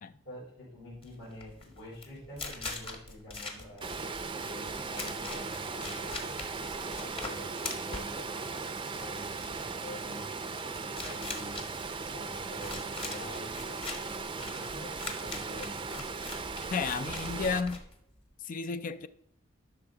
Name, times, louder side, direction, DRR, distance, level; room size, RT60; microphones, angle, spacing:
voice 1, 0.2-6.3 6.9-16.4, left 1 dB, 70° left, 4.1 m, -47 dB
sound 1, 0.9-18.3, left 3 dB, 30° left, 1.3 m, -43 dB
Water, 3.8-17.6, right 4 dB, 25° right, 0.5 m, -38 dB
voice 2, 16.7-17.8 18.4-19.1, left 5 dB, 45° left, 0.4 m, -32 dB
12.0 x 5.8 x 3.9 m
head